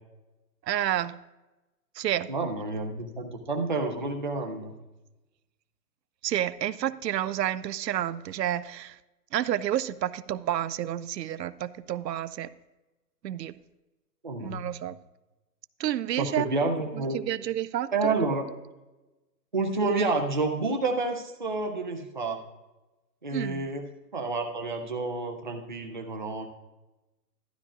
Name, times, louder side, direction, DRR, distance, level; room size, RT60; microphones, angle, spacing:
voice 1, 0.6-1.2 1.9-2.3 6.2-9.0 9.3-12.5 13.2-13.6 14.4-15.0 15.8-16.5 16.9-18.1 23.3-23.7, right 11 dB, 85° right, 0.6 m, -30 dB
voice 2, 2.3-4.7 14.2-14.6 16.2-17.2 17.9-18.4 19.5-22.4 23.2-23.8 24.1-26.5, right 3 dB, 30° right, 0.4 m, -29 dB
12.5 x 11.0 x 2.4 m
hypercardioid pair, 165°, 48 cm